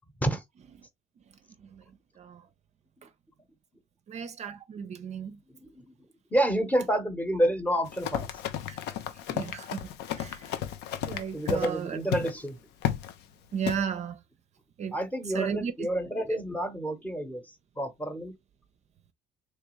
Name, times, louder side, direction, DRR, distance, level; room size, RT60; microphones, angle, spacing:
voice 1, 4.1-5.4 8.7-8.8 9.3-9.9 10.2-10.5 11.1-12.0 13.5-14.2 14.8-15.0 15.3-15.7 16.3-16.4, right 7 dB, 40° right, 0.5 m, -34 dB
voice 2, 5.6-5.9 6.3-8.3 11.3-12.6 14.9-18.3, right 1 dB, 10° left, 0.9 m, -29 dB
Run, 7.8-11.8 12.1-12.3 12.8-13.1 13.7-13.8, left 10 dB, 85° left, 0.6 m, -33 dB
3.4 x 3.1 x 3.0 m
cardioid pair, 110°, 17 cm